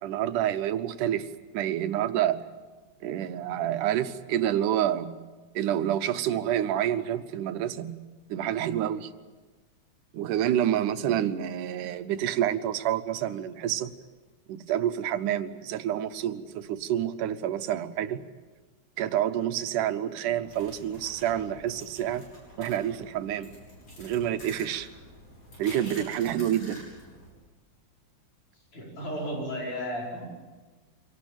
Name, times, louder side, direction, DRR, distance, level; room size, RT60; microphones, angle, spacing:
voice 1, 0.0-2.4 3.0-5.1 5.6-7.9 8.3-9.1 10.1-13.9 14.5-18.2 19.0-22.3 22.6-23.5 24.0-24.9 25.6-26.8, right 11 dB, 90° right, 11 dB, 2.5 m, -28 dB
sound 1, 20.4-27.3, left 1 dB, 45° left, 7.6 m, -48 dB
voice 2, 28.7-30.3, equal, 75° left, -3 dB, 6.7 m, -33 dB
25.5 x 18.0 x 8.8 m, 1.3 s
omnidirectional pair, 3.5 m